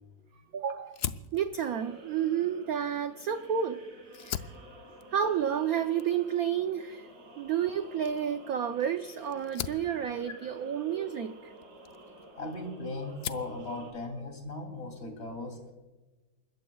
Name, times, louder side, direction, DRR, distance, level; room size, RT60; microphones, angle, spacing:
voice 1, 0.5-1.0 1.3-3.8 4.2-4.4 5.1-7.1 7.4-11.5, right 8 dB, 65° right, 7 dB, 0.9 m, -30 dB
Fire, 0.9-3.6 4.0-12.7 13.0-13.6, left 10 dB, 70° left, 0.9 m, -42 dB
sound 1, 1.6-13.9, right 1 dB, 40° right, 2.8 m, -52 dB
voice 2, 12.4-15.7, left 2 dB, 30° left, 3 dB, 3.2 m, -38 dB
29.0 x 14.5 x 2.3 m, 1.2 s
omnidirectional pair, 2.2 m